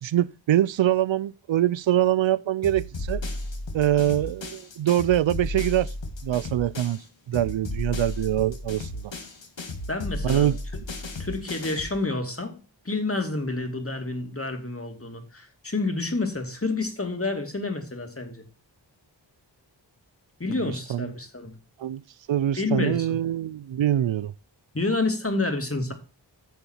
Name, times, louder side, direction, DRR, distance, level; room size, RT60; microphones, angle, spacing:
voice 1, 0.0-3.2 3.7-5.9 6.2-7.0 7.3-8.9 10.2-10.6 20.9-21.0 21.8-22.0 22.3-24.3, right 12 dB, 80° right, 0.5 m, -24 dB
sound 1, 2.6-7.0 7.3-12.0, left 1 dB, 75° left, 2.1 m, -34 dB
voice 2, 9.9-10.8 11.2-12.6 12.8-18.4 20.4-21.5 22.5-23.2 24.7-25.9, left 3 dB, 30° left, 2.6 m, -29 dB
9.5 x 7.0 x 4.4 m
wide cardioid pair, 55°, 45 cm